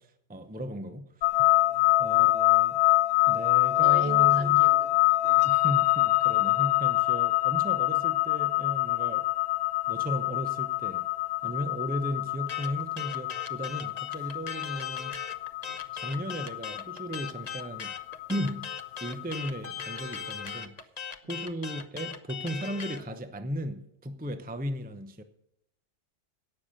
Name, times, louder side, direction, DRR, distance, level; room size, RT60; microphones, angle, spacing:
voice 1, 0.0-1.5 2.0-2.8 3.3-4.6 5.4-9.3 9.9-11.1 11.4-15.2 15.9-17.9 18.3-18.7 19.0-20.9 21.3-25.2, equal, 10° right, 0.7 m, -35 dB
sound 1, 1.2-20.3, left 19 dB, 60° left, 0.9 m, -25 dB
voice 2, 3.8-5.5 15.6-15.8, right 5 dB, 55° right, 2.4 m, -41 dB
sound 2, 12.5-23.0, left 6 dB, 40° left, 1.0 m, -39 dB
17.5 x 6.7 x 6.5 m
omnidirectional pair, 1.2 m